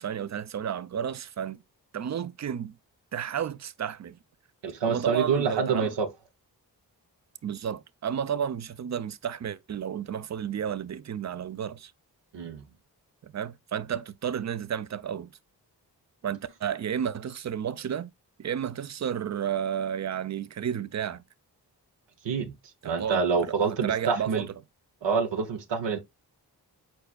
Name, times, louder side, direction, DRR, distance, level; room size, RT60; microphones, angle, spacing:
voice 1, 0.0-1.6 1.9-2.8 3.1-4.2 4.8-5.9 7.4-11.9 13.2-15.3 16.2-18.1 18.4-21.2 22.8-24.5, right 8 dB, 40° right, 0.5 m, -32 dB
voice 2, 4.6-6.1 12.3-12.6 22.2-22.5 22.8-24.5 25.0-26.0, right 5 dB, 85° right, 0.9 m, -27 dB
4.5 x 4.5 x 2.3 m
cardioid pair, 45°, 42 cm